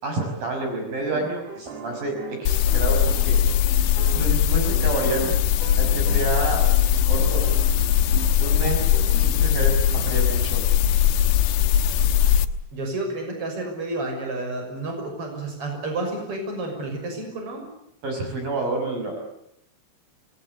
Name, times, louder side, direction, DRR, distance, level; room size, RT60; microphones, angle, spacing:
voice 1, 0.0-3.3 4.1-5.4 5.8-6.6 6.9-7.5 8.4-8.9 9.1-10.6 18.0-19.1, right 2 dB, 50° right, 2 dB, 7.1 m, -28 dB
sound 1, 1.1-9.3, right 8 dB, 65° right, 4.2 m, -39 dB
sound 2, 2.5-12.5, left 10 dB, 75° left, 3.1 m, -20 dB
voice 2, 12.7-17.6, right 2 dB, 30° right, 3 dB, 7.0 m, -30 dB
27.0 x 21.0 x 8.5 m, 0.81 s
omnidirectional pair, 5.2 m